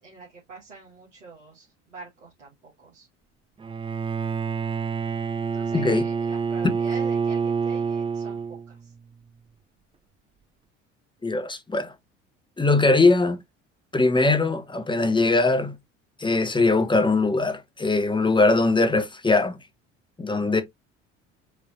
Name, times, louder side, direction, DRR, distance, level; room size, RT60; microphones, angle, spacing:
voice 1, 0.0-3.1 5.4-8.9, right 4 dB, 80° right, 1.6 m, -45 dB
Bowed string instrument, 3.6-8.9, right 6 dB, 15° right, 0.5 m, -27 dB
voice 2, 11.2-11.9 12.6-13.4 13.9-15.7 16.2-19.6 20.2-20.6, left 3 dB, 15° left, 1.0 m, -21 dB
5.0 x 3.0 x 2.9 m
figure-of-eight pair, 60°, 36 cm